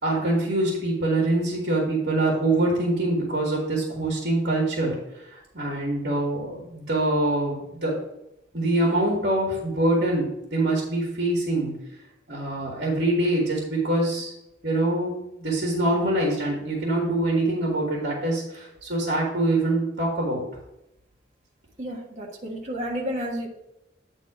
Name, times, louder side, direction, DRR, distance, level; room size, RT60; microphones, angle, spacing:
voice 1, 0.0-5.0 5.3-8.0 8.5-11.7 12.3-14.3 14.6-20.4, right 1 dB, 60° right, -2 dB, 1.8 m, -24 dB
voice 2, 21.8-23.5, equal, 40° right, -2 dB, 1.5 m, -31 dB
8.9 x 4.0 x 4.9 m, 0.86 s
head